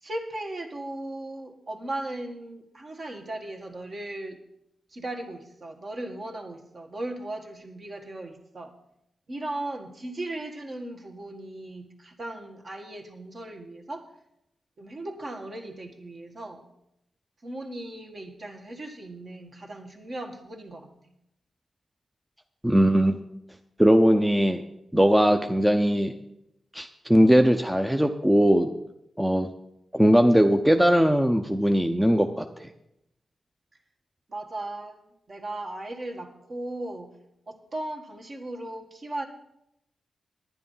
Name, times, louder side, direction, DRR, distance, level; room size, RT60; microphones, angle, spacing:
voice 1, 0.0-4.4 4.9-8.7 9.3-14.0 14.8-16.6 17.4-20.9 34.3-35.0 35.3-37.1 37.5-39.3, right 1 dB, 45° right, 2 dB, 1.6 m, -37 dB
voice 2, 22.6-23.2 23.8-24.6 24.9-26.1 26.7-28.7 29.2-29.5 29.9-32.7, equal, 5° right, 6 dB, 0.6 m, -20 dB
10.0 x 10.0 x 5.5 m, 0.81 s
cardioid pair, 90°, 0 cm